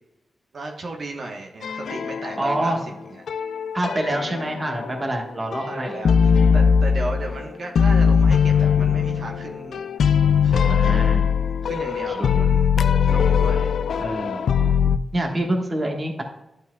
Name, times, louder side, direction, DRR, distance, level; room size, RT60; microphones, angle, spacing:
voice 1, 0.5-2.8 3.1-3.2 5.6-9.9 10.4-10.8 11.6-13.8, right 2 dB, 60° right, 1 dB, 1.1 m, -35 dB
sound 1, 1.6-2.8 3.3-5.2 5.5-7.5 7.7-15.0, left 6 dB, 90° left, 0.4 m, -20 dB
voice 2, 2.4-2.8 3.7-5.9 10.5-11.2 12.0-12.4 14.0-14.5 15.1-16.2, right 1 dB, 25° right, 2 dB, 1.4 m, -26 dB
11.5 x 5.5 x 2.3 m, 0.91 s
wide cardioid pair, 115°, 0 cm